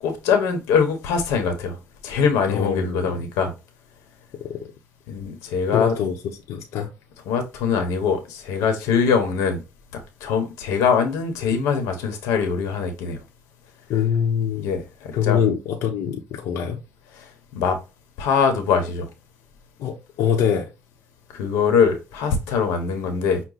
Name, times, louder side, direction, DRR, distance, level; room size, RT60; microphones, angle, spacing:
voice 1, 0.0-3.5 5.1-6.0 7.2-9.6 9.9-13.2 14.6-15.4 17.1-17.8 18.2-19.1 21.3-23.4, left 6 dB, 90° left, 1.1 m, -22 dB
voice 2, 2.5-3.1 4.5-4.7 5.7-6.1 6.5-6.9 13.9-14.7 15.1-16.8 19.8-20.7, left 8 dB, 70° left, 0.8 m, -24 dB
6.0 x 2.2 x 4.0 m
cardioid pair, 110°, 5 cm